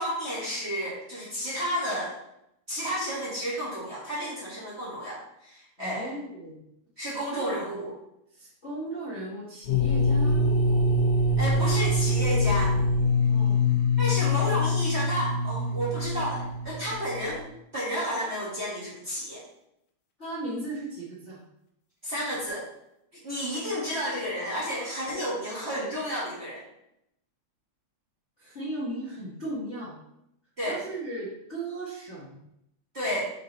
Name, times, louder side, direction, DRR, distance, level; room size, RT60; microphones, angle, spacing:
voice 1, 0.0-2.2 2.7-6.1 7.0-7.9 11.4-12.7 14.0-17.4 17.7-19.4 22.0-22.6 23.2-26.6 30.6-30.8 32.9-33.3, equal, 35° right, -7 dB, 1.1 m, -31 dB
voice 2, 5.8-6.6 7.3-7.8 8.3-10.4 13.1-13.8 20.2-21.4 28.4-29.9 30.6-32.4, right 1 dB, 90° left, -7 dB, 0.6 m, -36 dB
sound 1, 9.6-17.4, left 2 dB, 70° left, 2.0 m, -24 dB
5.5 x 5.2 x 4.0 m, 0.80 s
omnidirectional pair, 3.6 m